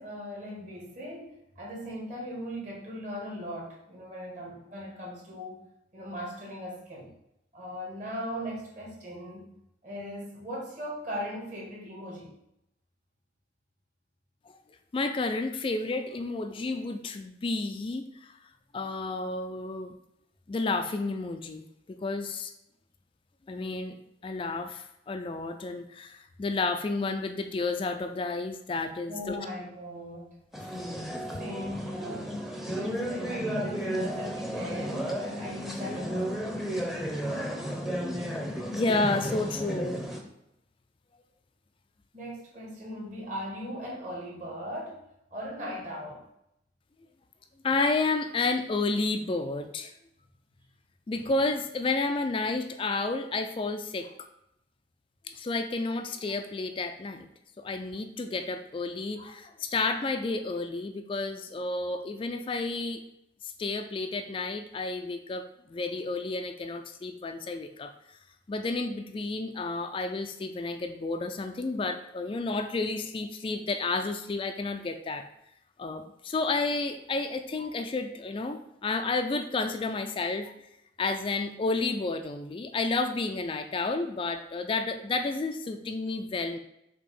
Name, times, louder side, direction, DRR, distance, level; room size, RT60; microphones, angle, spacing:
voice 1, 0.0-5.6 5.9-7.1 7.5-9.5 9.8-12.3 29.1-30.3 31.4-32.3 32.6-36.3 42.1-45.0 45.3-46.3, equal, 45° right, -3 dB, 2.0 m, -38 dB
voice 2, 14.9-18.4 18.7-19.9 20.5-22.5 23.5-24.0 24.2-29.4 30.7-31.0 38.7-40.0 47.6-49.9 51.1-54.1 55.2-57.3 57.6-63.0 63.4-68.2 68.5-75.3 75.8-80.5 81.0-86.6, left 3 dB, 30° left, 7 dB, 0.3 m, -31 dB
sound 1, 30.5-40.2, equal, ahead, 0.7 m, -33 dB
6.5 x 2.9 x 5.3 m, 0.81 s
head